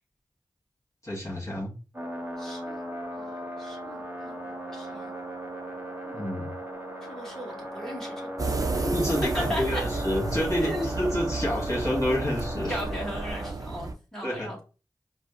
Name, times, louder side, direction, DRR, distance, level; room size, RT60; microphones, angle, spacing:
voice 1, 1.0-1.7 6.1-6.5 8.8-12.8 14.2-14.6, left 1 dB, 40° left, -5 dB, 1.5 m, -29 dB
sound 1, 1.9-13.5, equal, 25° right, 1.2 m, -37 dB
voice 2, 2.4-3.2 3.6-4.4 4.7-5.1 6.0-6.2 7.1-8.8 9.3-9.8 10.6-10.9 12.7-14.6, equal, 5° left, -4 dB, 1.8 m, -37 dB
sound 2, 8.4-13.9, right 3 dB, 45° right, 0.5 m, -31 dB
5.0 x 2.0 x 2.5 m, 0.34 s
cardioid pair, 40°, 8 cm